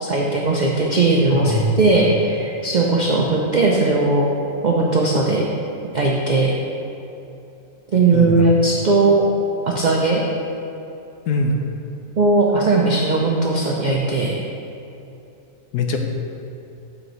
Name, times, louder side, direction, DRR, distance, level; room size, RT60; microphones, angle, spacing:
voice 1, 0.0-4.3 4.6-5.5 5.9-6.5 7.9-9.3 9.7-10.2 12.2-14.4, right 3 dB, 85° right, -2 dB, 0.4 m, -18 dB
voice 2, 1.3-1.8 8.1-8.5 11.3-11.6 15.7-16.0, left 2 dB, 85° left, 4 dB, 1.2 m, -22 dB
7.7 x 6.1 x 3.1 m, 2.8 s
omnidirectional pair, 1.6 m